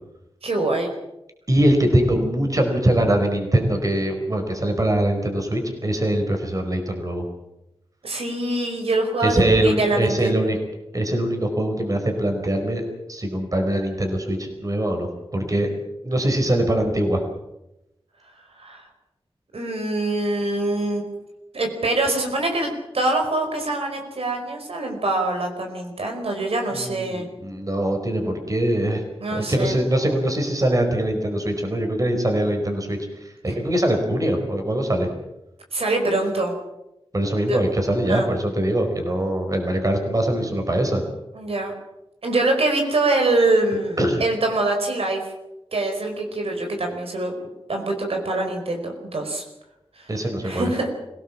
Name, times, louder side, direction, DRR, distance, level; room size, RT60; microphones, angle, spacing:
voice 1, 0.4-0.9 8.0-10.4 18.6-18.9 19.5-21.1 21.5-27.3 29.2-29.7 35.7-36.6 37.5-37.6 38.1-38.3 41.3-41.7 42.2-45.3 45.7-47.3 47.7-49.4 50.0-50.1 50.4-50.9, right 2 dB, 80° right, 3 dB, 5.0 m, -24 dB
voice 2, 1.5-7.3 9.2-10.6 10.9-12.8 13.1-15.7 16.0-17.2 26.8-29.0 29.3-35.1 37.1-41.0 44.0-44.2 50.1-50.7, right 1 dB, 35° right, 4 dB, 4.8 m, -22 dB
26.0 x 17.5 x 7.4 m, 0.90 s
wide cardioid pair, 90°, 10 cm